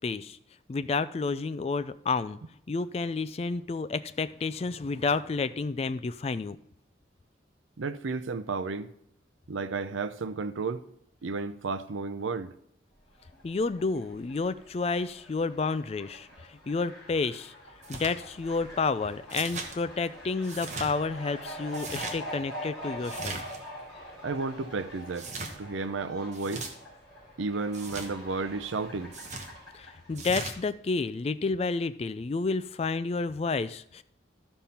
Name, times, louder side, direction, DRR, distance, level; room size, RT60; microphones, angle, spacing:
voice 1, 0.0-0.4 0.7-2.4 2.7-6.6 13.4-17.5 17.9-23.4 29.7-34.0, left 4 dB, 30° left, 0.3 m, -30 dB
voice 2, 7.8-8.9 9.5-10.8 11.2-12.5 24.2-26.7 27.4-29.1, right 4 dB, 90° right, 0.6 m, -32 dB
Fowl, 13.1-30.4, equal, ahead, 3.7 m, -45 dB
sound 1, 17.8-18.1 19.3-19.7 20.4-20.9 21.7-22.2 23.0-23.6 25.1-25.5 26.3-26.7 27.7-28.1 29.1-29.5 30.1-30.5, right 3 dB, 40° right, 1.1 m, -38 dB
13.5 x 5.4 x 4.3 m
head